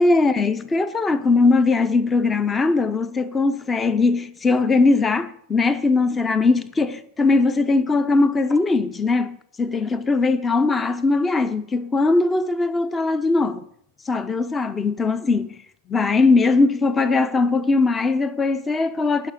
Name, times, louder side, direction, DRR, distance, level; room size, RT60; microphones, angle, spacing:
voice 1, 0.0-13.7 14.1-15.6 15.9-19.3, left 3 dB, 15° left, 0.7 m, -20 dB
11.0 x 5.6 x 8.5 m
figure-of-eight pair, 90°, 0 cm